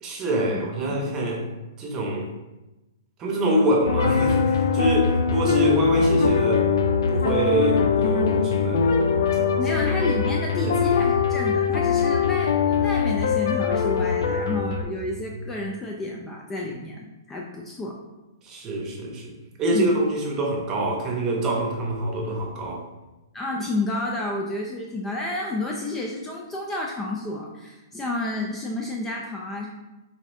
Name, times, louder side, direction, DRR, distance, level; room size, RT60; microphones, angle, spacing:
voice 1, 0.0-1.4 1.8-2.3 3.2-6.7 7.1-9.0 10.6-11.0 18.4-19.3 19.6-22.8, right 1 dB, 25° right, -1 dB, 0.8 m, -25 dB
sound 1, 3.9-14.8, left 6 dB, 80° left, 0.4 m, -22 dB
voice 2, 9.6-17.9 19.7-19.9 23.3-29.7, left 2 dB, 15° left, -1 dB, 0.3 m, -30 dB
5.1 x 2.6 x 2.6 m, 1.1 s
hypercardioid pair, 145°, 2 cm